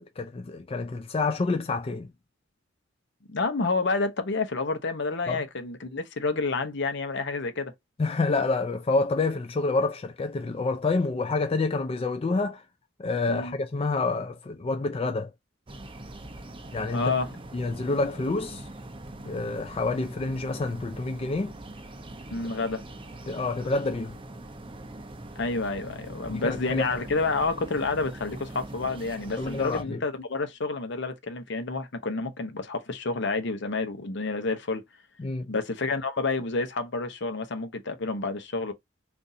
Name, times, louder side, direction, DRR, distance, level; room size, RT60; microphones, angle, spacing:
voice 1, 0.0-2.1 5.3-5.4 8.0-12.6 13.0-15.3 16.7-17.1 17.5-18.7 19.2-21.5 22.4-22.6 23.3-24.2 26.3-26.9 29.4-30.0 35.2-35.5, left 3 dB, 30° left, 0.4 m, -28 dB
voice 2, 3.3-7.7 13.3-13.6 16.9-17.3 22.3-22.8 25.4-34.8 35.5-38.7, left 3 dB, 65° left, 0.8 m, -29 dB
sound 1, 15.7-29.8, right 1 dB, 25° right, 0.6 m, -42 dB
3.9 x 2.6 x 2.7 m
head